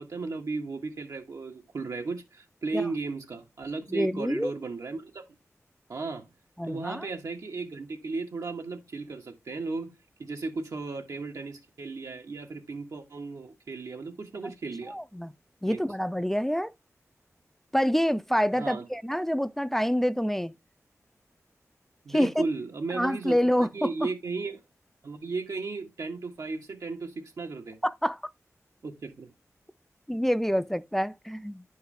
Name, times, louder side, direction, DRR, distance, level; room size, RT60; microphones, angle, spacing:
voice 1, 0.0-5.2 5.9-6.3 6.6-14.9 15.6-15.9 18.5-18.9 22.0-24.6 25.0-27.8 28.8-29.3, right 3 dB, 90° right, 1.5 m, -35 dB
voice 2, 3.9-4.5 6.6-7.1 14.4-14.5 14.9-15.3 15.6-16.7 17.7-20.5 22.1-22.5 22.9-24.1 27.8-28.2 30.1-31.6, equal, 5° left, 0.4 m, -27 dB
10.5 x 4.7 x 3.3 m
cardioid pair, 55°, 6 cm